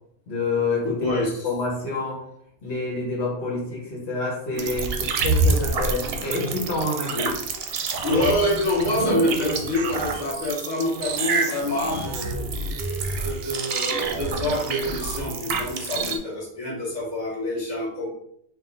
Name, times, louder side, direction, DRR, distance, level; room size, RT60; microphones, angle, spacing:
voice 1, 0.3-2.2 2.6-7.3, left 2 dB, 75° left, -3 dB, 1.3 m, -28 dB
voice 2, 0.8-1.3 7.1-7.3 8.0-12.4 13.1-18.1, left 1 dB, 40° left, -5 dB, 1.3 m, -26 dB
sound 1, 4.6-16.2, right 3 dB, 65° right, 0.8 m, -27 dB
3.6 x 2.4 x 3.9 m, 0.72 s
omnidirectional pair, 1.1 m